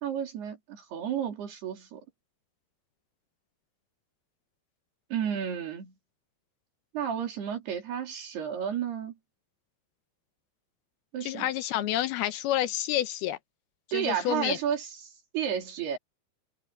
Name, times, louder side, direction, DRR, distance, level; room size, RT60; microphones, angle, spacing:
voice 1, 0.0-2.0 5.1-5.9 6.9-9.1 11.1-11.5 13.9-14.9 15.3-16.0, right 8 dB, 75° right, 5.2 m, -32 dB
voice 2, 11.2-13.4 13.9-14.6, left 13 dB, 80° left, 2.7 m, -29 dB
omnidirectional pair, 4.7 m